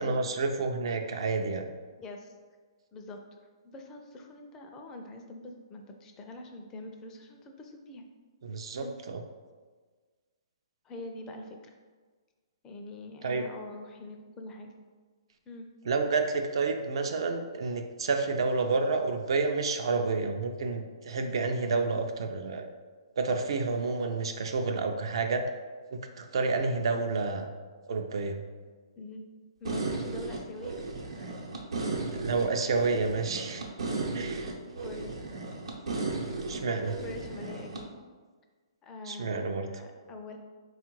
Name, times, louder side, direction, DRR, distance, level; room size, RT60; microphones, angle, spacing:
voice 1, 0.0-1.6 8.4-9.2 13.2-13.4 15.8-22.7 23.2-25.4 25.9-27.5 27.9-28.4 32.1-33.6 34.1-34.5 36.5-37.0 39.1-39.7, right 4 dB, 65° right, 5 dB, 0.5 m, -29 dB
voice 2, 2.0-2.3 2.9-3.2 3.6-8.0 8.8-8.9 10.8-11.7 12.6-14.7 15.5-15.7 29.0-29.2 29.6-30.8 31.1-31.3 34.8-35.1 37.0-37.9 38.8-40.4, left 2 dB, 20° left, 3 dB, 0.4 m, -44 dB
sound 1, 29.6-37.8, right 3 dB, 85° right, 0.8 m, -35 dB
3.6 x 2.4 x 4.5 m, 1.5 s
hypercardioid pair, 145°, 3 cm